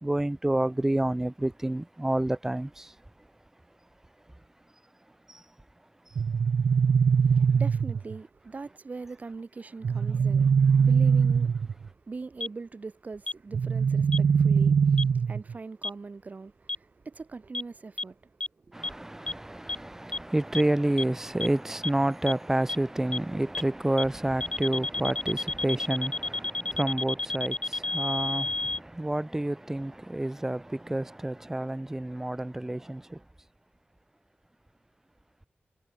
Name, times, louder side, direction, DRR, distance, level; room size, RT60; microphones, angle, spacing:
voice 1, 0.0-2.9 5.3-5.4 18.7-33.2, right 1 dB, 10° right, 0.7 m, -29 dB
sound 1, 6.2-8.2 9.8-11.9 13.5-15.5, right 6 dB, 70° right, 0.7 m, -22 dB
voice 2, 7.2-18.8, right 4 dB, 40° right, 3.9 m, -42 dB
sound 2, 12.4-12.5 13.3-13.4 14.1-14.2 15.0-15.1 15.8-15.9 16.7-16.8 17.5-17.6 18.0-18.1 18.4-18.5 18.8-18.9 19.3-19.4 19.7-19.8 20.1-20.2 20.5-20.6 21.0-21.1 21.4-21.5 21.8-21.9 22.3-22.4 22.7-22.8 23.1-23.2 23.5-23.6 24.0-24.1 24.4-28.8, left 2 dB, 25° left, 1.4 m, -30 dB
wide cardioid pair, 125°, 4 cm